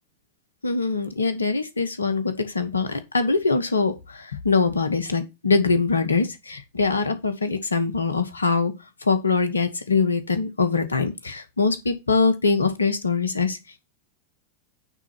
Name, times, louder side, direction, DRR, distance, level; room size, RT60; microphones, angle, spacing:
voice 1, 0.6-8.7 9.0-13.6, left 4 dB, 75° left, 1.2 m, -23 dB
9.0 x 3.9 x 5.8 m
figure-of-eight pair, 90°, 0 cm